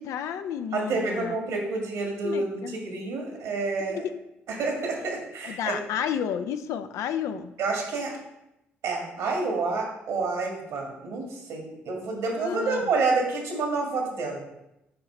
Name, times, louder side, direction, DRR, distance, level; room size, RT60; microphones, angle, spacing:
voice 1, 0.0-1.4 2.2-2.8 3.9-4.2 5.4-7.5 12.4-12.8, left 8 dB, 70° left, 10 dB, 0.4 m, -31 dB
voice 2, 0.7-4.0 4.5-5.8 7.6-8.1 8.8-14.4, right 3 dB, 75° right, 0 dB, 1.6 m, -28 dB
8.7 x 2.9 x 4.3 m, 0.88 s
hypercardioid pair, 50°, 5 cm